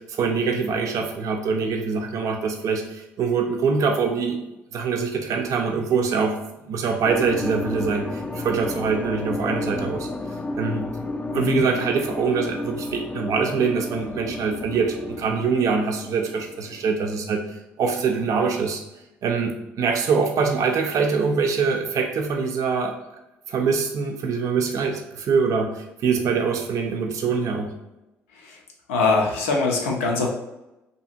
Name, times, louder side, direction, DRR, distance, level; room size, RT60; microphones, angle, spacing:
voice 1, 0.0-4.4 4.7-6.4 6.7-10.1 10.6-10.9 11.3-18.8 19.2-22.9 23.5-27.7, right 5 dB, 55° right, 3 dB, 0.4 m, -24 dB
sound 1, 7.0-17.1, left 2 dB, 15° left, 0.4 m, -32 dB
voice 2, 28.9-30.3, left 3 dB, 85° left, 0 dB, 0.5 m, -22 dB
2.8 x 2.6 x 2.5 m, 0.95 s
hypercardioid pair, 50°, 7 cm